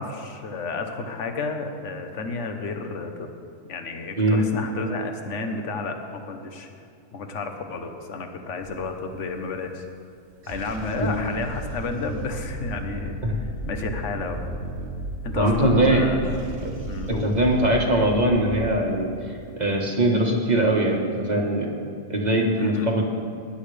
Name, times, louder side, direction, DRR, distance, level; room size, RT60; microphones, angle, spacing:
voice 1, 0.0-3.3 3.7-6.7 7.1-9.8 10.5-14.4 15.2-16.4 16.9-17.3 22.5-22.9, left 3 dB, 55° left, 5 dB, 1.3 m, -31 dB
sound 1, 8.6-9.3 10.3-19.7, right 1 dB, 45° right, 1.5 m, -34 dB
voice 2, 15.3-16.1 17.1-19.1 19.6-21.7 22.1-23.0, right 1 dB, 30° right, -1 dB, 1.5 m, -21 dB
19.5 x 11.0 x 3.4 m, 2.5 s
omnidirectional pair, 1.6 m